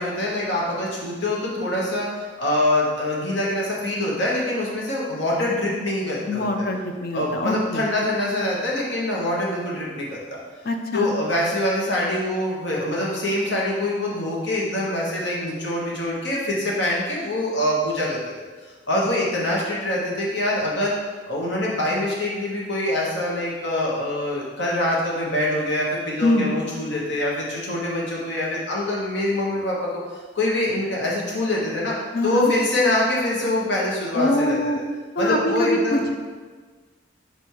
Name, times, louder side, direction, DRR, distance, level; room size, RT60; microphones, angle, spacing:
voice 1, 0.0-6.7 7.1-10.4 10.9-18.2 18.9-20.9 21.3-29.9 30.3-31.9 32.2-34.6 35.2-36.0, left 1 dB, 70° left, -4 dB, 1.3 m, -24 dB
voice 2, 6.3-7.8 10.6-11.1 26.2-26.5 32.1-32.5 34.1-34.8 35.2-36.1, left 1 dB, 50° left, 4 dB, 0.6 m, -23 dB
6.0 x 3.5 x 4.6 m, 1.4 s
head